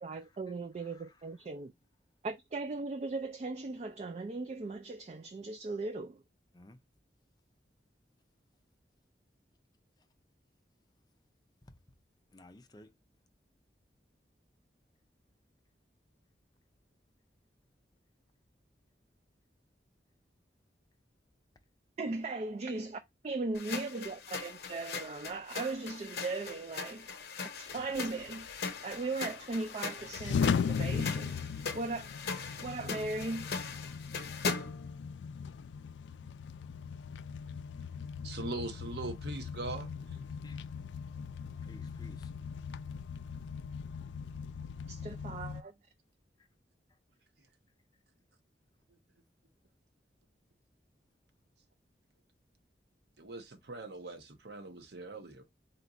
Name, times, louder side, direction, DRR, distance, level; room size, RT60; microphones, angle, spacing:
voice 1, 0.0-1.7 2.2-6.2 22.0-27.1 27.6-31.4 31.7-32.1 32.6-33.5 44.9-45.7, right 3 dB, 35° right, 0.3 m, -38 dB
voice 2, 0.8-1.3 6.5-6.8 11.7-11.8 12.3-12.9 23.3-23.4 40.4-41.0 41.6-42.3, left 1 dB, 20° left, 0.5 m, -56 dB
sound 1, 23.5-34.9, left 5 dB, 60° left, 0.8 m, -40 dB
sound 2, 27.7-45.6, left 6 dB, 85° left, 0.3 m, -39 dB
voice 3, 38.2-40.2 53.2-55.4, right 2 dB, 70° right, 0.9 m, -41 dB
4.3 x 2.4 x 3.9 m
head